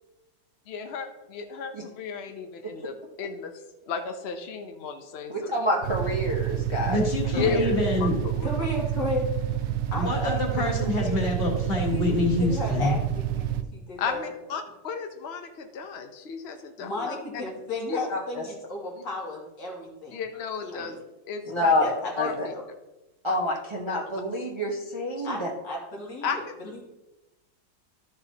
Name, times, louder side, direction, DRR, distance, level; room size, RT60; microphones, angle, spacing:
voice 1, 0.7-3.6 3.9-5.3 7.3-7.6 8.0-8.5 14.0-17.2 17.9-18.0 20.1-21.7 22.2-22.3 23.3-23.4 23.9-24.0 25.2-25.3 26.2-26.6, left 6 dB, 55° left, 6 dB, 0.7 m, -34 dB
voice 2, 5.3-7.1 7.3-7.7 18.1-18.4 21.5-22.5 23.2-25.5, left 1 dB, 20° right, -2 dB, 0.8 m, -27 dB
sound 1, 5.8-13.6, right 12 dB, 85° right, 1.3 m, -29 dB
voice 3, 6.8-8.2 9.9-13.0, left 2 dB, 35° left, 0 dB, 1.8 m, -26 dB
voice 4, 8.2-9.3 9.9-11.2 11.9-14.3 16.8-20.2 20.6-21.0 21.8-22.6 25.2-26.8, left 2 dB, 80° left, -3 dB, 2.9 m, -34 dB
13.0 x 6.7 x 2.8 m, 1.0 s
omnidirectional pair, 1.9 m